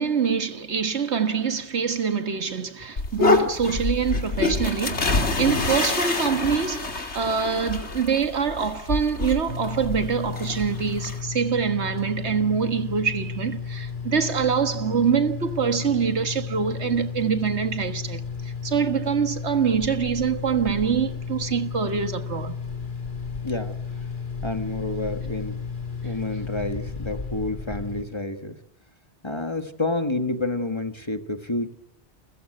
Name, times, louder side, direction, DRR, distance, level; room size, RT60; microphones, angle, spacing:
voice 1, 0.0-22.6, right 6 dB, 70° right, 1.8 m, -25 dB
sound 1, 3.0-11.2, left 3 dB, 70° left, 2.8 m, -26 dB
sound 2, 9.5-28.0, left 5 dB, 45° left, 2.6 m, -33 dB
voice 2, 23.4-23.8 24.4-25.6 26.0-28.6 29.2-31.7, left 2 dB, 25° left, 1.6 m, -29 dB
29.5 x 14.5 x 7.8 m
omnidirectional pair, 1.2 m